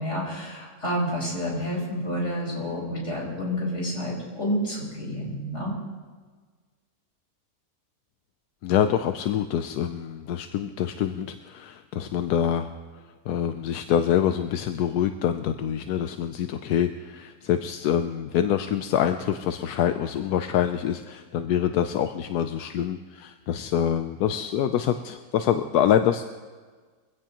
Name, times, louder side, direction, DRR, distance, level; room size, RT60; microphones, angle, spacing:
voice 1, 0.0-5.7, equal, 50° left, -4 dB, 5.6 m, -29 dB
voice 2, 8.6-12.7 13.3-26.2, left 9 dB, 85° left, 8 dB, 1.1 m, -25 dB
23.5 x 16.0 x 2.9 m, 1.5 s
omnidirectional pair, 1.6 m